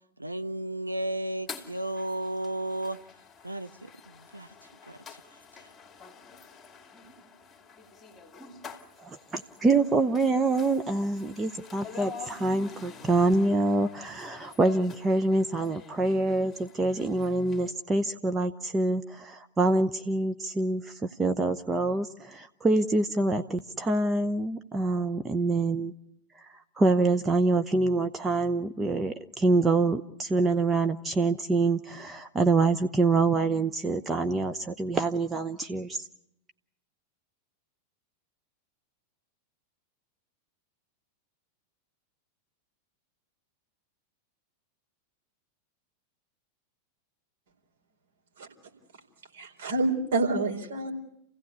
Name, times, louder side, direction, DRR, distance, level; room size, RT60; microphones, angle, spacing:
voice 1, 0.2-3.0 3.4-4.5 4.9-5.2 5.6-5.7, right 1 dB, 85° right, 0.8 m, -34 dB
sound 1, 1.5-17.7, left 5 dB, 15° left, 2.5 m, -48 dB
voice 2, 9.0-25.9 26.4-36.1, right 3 dB, 15° right, 0.8 m, -26 dB
voice 3, 49.3-50.9, right 2 dB, 60° right, 4.5 m, -28 dB
29.0 x 16.0 x 8.4 m
figure-of-eight pair, 90°, 0 cm